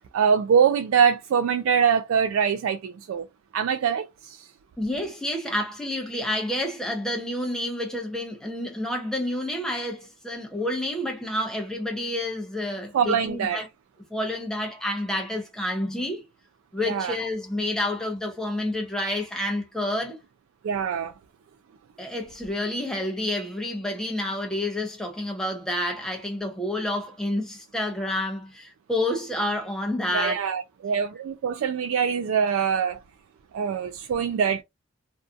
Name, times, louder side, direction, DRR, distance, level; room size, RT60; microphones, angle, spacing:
voice 1, 0.1-3.3 3.5-4.5 12.9-13.6 16.8-17.2 20.6-21.1 30.1-33.0 33.5-34.6, right 7 dB, 90° right, 0.3 m, -23 dB
voice 2, 4.8-13.7 14.1-16.2 16.7-20.2 22.0-30.5, left 1 dB, 5° left, 0.6 m, -29 dB
2.6 x 2.3 x 2.4 m
head